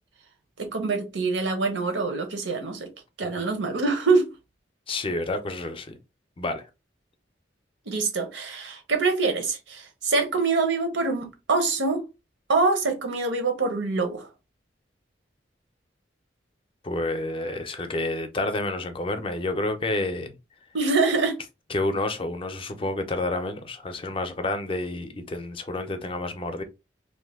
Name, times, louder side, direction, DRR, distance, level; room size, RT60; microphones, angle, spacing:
voice 1, 0.6-2.9 3.2-4.3 7.9-12.0 12.5-14.3 20.7-21.4, right 3 dB, 90° right, 0.8 m, -25 dB
voice 2, 4.9-6.0 6.4-6.7 16.8-20.3 21.7-26.6, left 2 dB, 30° left, 0.4 m, -29 dB
2.6 x 2.1 x 3.4 m
head